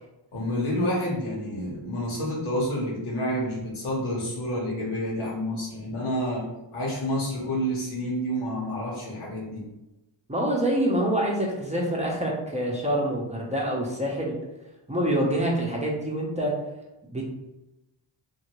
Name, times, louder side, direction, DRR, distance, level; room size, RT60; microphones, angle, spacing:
voice 1, 0.3-6.5 6.7-9.6, equal, 85° left, -4 dB, 1.2 m, -29 dB
voice 2, 10.3-14.4 14.9-16.5 17.1-17.2, right 1 dB, 15° right, -3 dB, 0.7 m, -26 dB
2.7 x 2.6 x 3.0 m, 0.97 s
cardioid pair, 75°, 49 cm